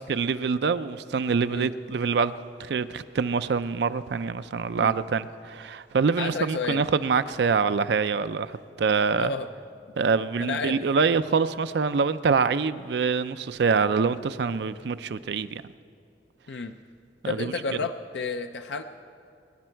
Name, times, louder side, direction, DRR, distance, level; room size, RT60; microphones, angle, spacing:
voice 1, 0.1-2.3 2.6-8.5 8.8-9.3 10.0-15.6 17.2-17.5, right 5 dB, 65° right, 12 dB, 0.4 m, -25 dB
voice 2, 6.2-6.8 9.2-9.5 10.4-10.8 16.5-16.7 17.2-18.8, left 4 dB, 70° left, 7 dB, 0.5 m, -31 dB
24.0 x 10.5 x 4.5 m, 2.5 s
head